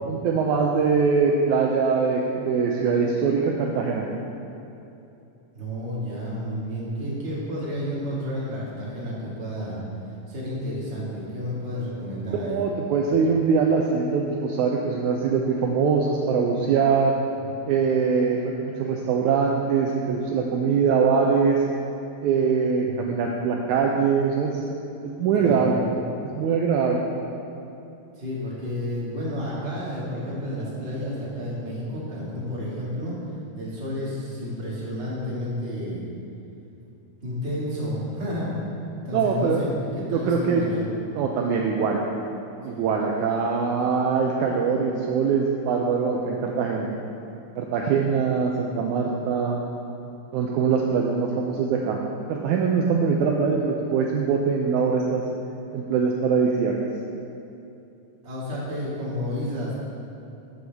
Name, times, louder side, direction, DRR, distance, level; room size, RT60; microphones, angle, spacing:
voice 1, 0.1-4.1 12.4-17.2 17.7-21.6 22.2-24.6 25.0-25.8 26.2-27.0 39.1-39.6 40.1-40.6 41.2-42.0 42.6-46.9 47.6-49.6 50.3-52.0 52.3-55.2 55.7-56.7, right 5 dB, 80° right, 0 dB, 1.7 m, -23 dB
voice 2, 5.5-9.8 10.3-12.6 17.4-17.6 22.8-22.9 25.4-25.7 28.1-33.1 33.6-36.0 37.2-38.6 39.0-40.9 42.5-42.9 58.2-59.7, left 1 dB, 20° right, -7 dB, 1.7 m, -31 dB
11.0 x 8.0 x 3.5 m, 2.8 s
omnidirectional pair, 4.0 m